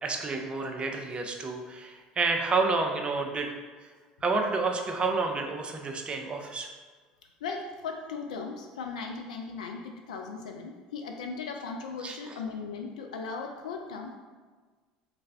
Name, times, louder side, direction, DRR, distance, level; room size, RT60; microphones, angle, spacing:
voice 1, 0.0-3.5 4.2-6.7 12.0-12.4, right 3 dB, 25° right, 3 dB, 0.5 m, -29 dB
voice 2, 7.4-14.2, left 4 dB, 80° left, 2 dB, 0.3 m, -37 dB
3.2 x 2.5 x 3.2 m, 1.4 s
hypercardioid pair, 70°, 4 cm